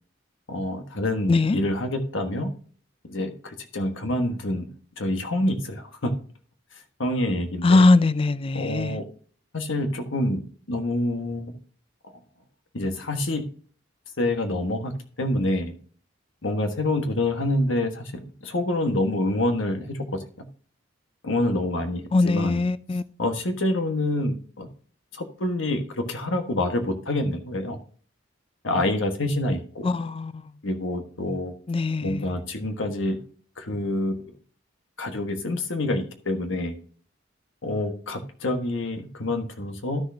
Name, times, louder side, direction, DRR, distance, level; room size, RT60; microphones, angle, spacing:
voice 1, 0.5-2.5 3.0-4.7 5.0-6.1 7.0-7.8 8.5-9.0 9.5-10.4 10.7-11.5 12.7-13.4 14.2-14.9 15.2-15.7 16.4-20.2 21.2-22.6 23.2-24.7 25.1-27.8 28.6-29.9 30.6-31.5 32.0-33.2 33.6-34.2 35.0-36.8 37.6-40.0, left 1 dB, 75° left, 1.4 m, -27 dB
voice 2, 7.6-9.0 22.1-23.0 29.8-30.3 31.7-32.3, left 3 dB, 30° left, 0.3 m, -21 dB
12.5 x 6.3 x 2.7 m
head